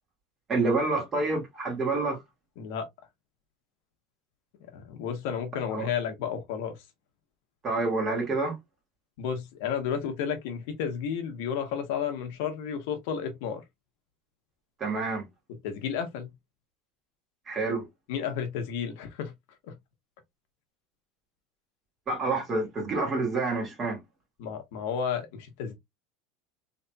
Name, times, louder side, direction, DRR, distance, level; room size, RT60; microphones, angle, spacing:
voice 1, 0.5-2.2 5.7-5.9 7.6-8.5 14.8-15.3 17.5-17.9 22.1-24.0, right 3 dB, 25° right, 2.0 m, -28 dB
voice 2, 2.6-2.9 4.7-6.8 9.2-13.6 15.6-16.3 18.1-19.3 19.7-19.8 24.4-25.7, left 7 dB, 70° left, 1.1 m, -32 dB
4.0 x 3.2 x 2.3 m
supercardioid pair, 150°, 0 cm